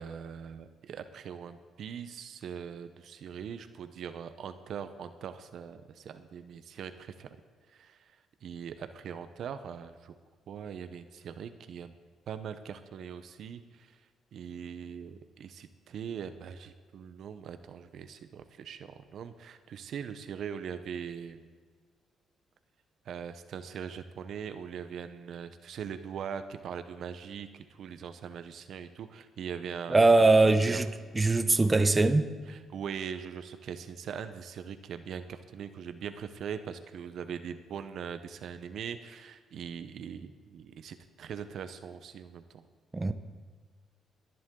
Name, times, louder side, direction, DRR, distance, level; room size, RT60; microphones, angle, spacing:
voice 1, 0.0-7.3 7.7-10.1 10.5-12.0 12.3-14.0 14.3-21.5 23.0-30.8 32.5-42.6, right 7 dB, 65° right, 10 dB, 0.8 m, -41 dB
voice 2, 29.9-30.9 31.1-32.3 42.9-43.1, right 2 dB, 20° right, 9 dB, 0.8 m, -21 dB
22.5 x 10.5 x 3.8 m, 1.5 s
cardioid pair, 90°, 0 cm